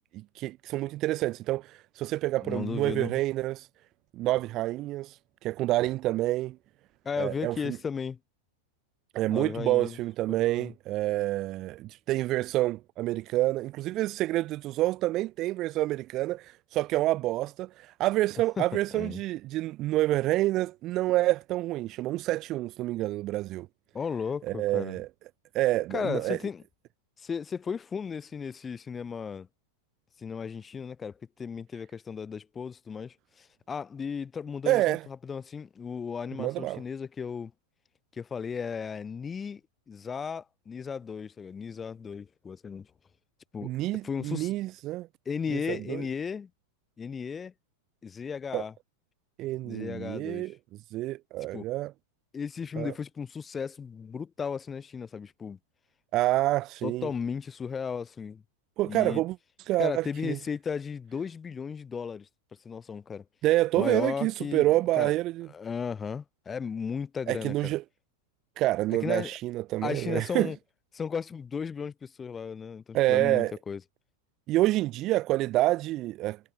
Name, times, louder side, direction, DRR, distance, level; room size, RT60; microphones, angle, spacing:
voice 1, 0.3-3.7 4.1-6.6 7.2-7.8 9.1-23.7 24.4-25.1 25.5-26.4 34.7-35.0 36.4-36.8 43.6-45.1 45.5-46.0 48.5-48.6 49.4-50.5 50.9-51.9 52.8-52.9 56.1-57.1 58.8-59.4 59.7-60.4 63.4-65.5 67.3-67.8 68.6-70.5 72.9-73.5 74.5-76.5, right 16 dB, 35° right, 0.6 m, -28 dB
voice 2, 2.4-3.2 7.0-8.2 9.3-10.0 10.3-10.7 18.6-18.7 18.9-19.2 23.9-25.0 25.9-26.6 27.2-29.5 30.2-37.5 38.1-39.6 39.9-42.9 43.5-43.7 44.0-44.6 45.3-46.5 47.0-47.5 48.0-48.7 49.6-50.5 51.5-51.6 52.3-55.6 56.8-58.4 58.9-59.2 59.8-62.3 62.6-63.2 63.8-64.7 65.0-65.1 65.5-67.7 68.9-69.4 69.8-70.6 70.9-73.8, left 6 dB, 20° left, 5.5 m, -35 dB
figure-of-eight pair, 90°, 0 cm